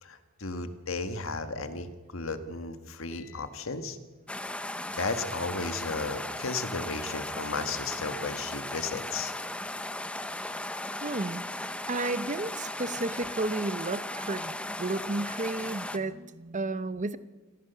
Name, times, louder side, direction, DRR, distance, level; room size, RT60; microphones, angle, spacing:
voice 1, 0.0-4.0 4.9-9.3, left 3 dB, 70° left, 9 dB, 1.6 m, -34 dB
sound 1, 4.3-16.0, left 1 dB, 5° left, 0.8 m, -36 dB
voice 2, 11.0-11.5 11.9-17.2, right 2 dB, 35° right, 13 dB, 0.8 m, -32 dB
27.0 x 15.5 x 6.9 m, 1.3 s
head